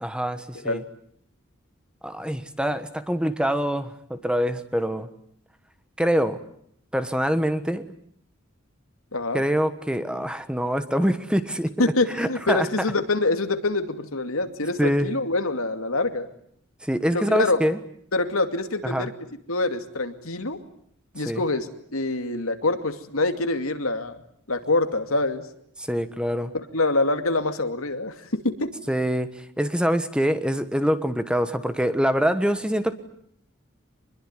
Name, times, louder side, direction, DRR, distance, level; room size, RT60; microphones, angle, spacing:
voice 1, 0.0-0.8 2.0-5.1 6.0-6.4 6.9-7.8 9.3-11.7 12.1-12.7 14.8-15.1 16.8-17.8 18.8-19.1 21.2-21.4 25.8-26.5 28.9-29.3 29.6-32.9, equal, 5° right, 11 dB, 1.3 m, -24 dB
voice 2, 9.1-9.4 11.8-16.3 17.1-17.6 18.1-19.1 19.5-20.6 21.1-24.2 24.5-25.4 26.5-28.7, left 2 dB, 85° left, 7 dB, 2.5 m, -25 dB
26.0 x 21.5 x 9.8 m, 0.67 s
head